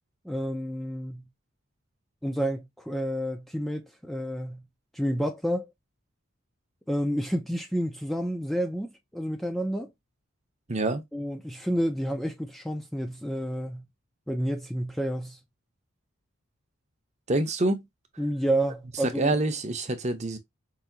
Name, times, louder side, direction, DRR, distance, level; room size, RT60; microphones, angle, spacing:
voice 1, 0.2-1.2 2.2-4.6 4.9-5.7 6.9-9.9 11.1-13.8 14.3-15.4 18.2-19.4, equal, ahead, 0.4 m, -30 dB
voice 2, 10.7-11.0 17.3-17.9 19.0-20.4, right 2 dB, 35° right, 0.7 m, -26 dB
4.8 x 2.7 x 2.7 m
head